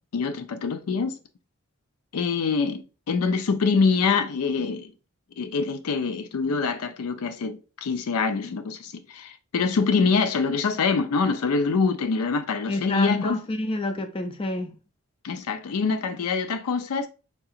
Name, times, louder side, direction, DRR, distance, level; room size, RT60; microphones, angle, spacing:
voice 1, 0.1-1.2 2.1-4.9 5.4-13.4 15.2-17.1, left 4 dB, 90° left, 0.4 m, -25 dB
voice 2, 12.7-14.8, left 2 dB, 25° left, 0.3 m, -29 dB
3.6 x 2.8 x 2.4 m
head